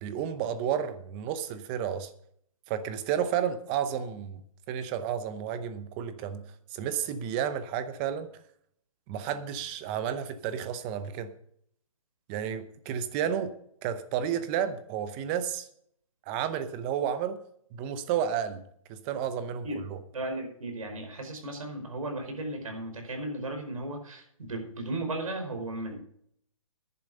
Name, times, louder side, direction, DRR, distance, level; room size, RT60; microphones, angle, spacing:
voice 1, 0.0-2.1 2.7-4.4 4.7-6.4 6.7-8.3 9.1-11.3 12.3-13.5 13.8-15.7 16.3-17.4 17.7-18.6 18.9-20.0, right 9 dB, 20° right, 11 dB, 0.8 m, -31 dB
voice 2, 20.1-26.0, right 2 dB, 75° right, 4 dB, 5.1 m, -35 dB
11.0 x 8.9 x 6.6 m, 0.65 s
hypercardioid pair, 160°, 18 cm